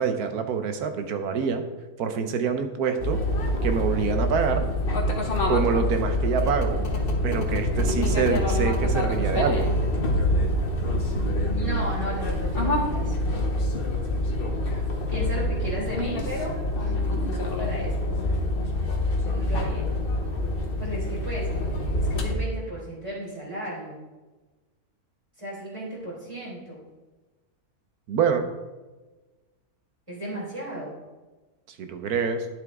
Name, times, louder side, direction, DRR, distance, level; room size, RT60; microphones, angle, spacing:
voice 1, 0.0-1.6 2.0-3.2 3.6-4.6 5.5-6.9 7.2-9.7 28.1-28.5 31.8-32.5, right 6 dB, 80° right, 7 dB, 1.4 m, -26 dB
sound 1, 3.0-22.3, left 1 dB, 40° left, 1.2 m, -26 dB
voice 2, 11.5-13.2 15.1-18.0 18.2-18.4 19.2-19.9 20.8-24.0 25.4-26.8 30.1-30.9, right 1 dB, 20° right, -7 dB, 3.2 m, -35 dB
10.0 x 7.3 x 3.6 m, 1.2 s
omnidirectional pair, 1.6 m